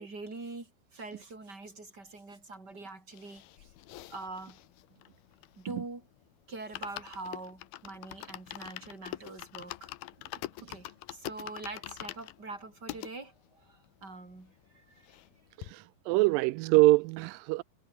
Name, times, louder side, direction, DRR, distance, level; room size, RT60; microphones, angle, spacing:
voice 1, 0.0-3.7 4.1-4.6 5.6-6.1 6.5-9.9 10.7-15.2, right 3 dB, 25° right, 6.1 m, -44 dB
sound 1, 3.1-5.9 6.2-6.3 6.6-13.1 13.7-13.8 14.0-14.1 14.4-15.3 15.6-15.7, left 16 dB, 80° left, 2.7 m, -44 dB
voice 2, 15.6-17.6, right 22 dB, 85° right, 2.0 m, -24 dB
omnidirectional pair, 4.4 m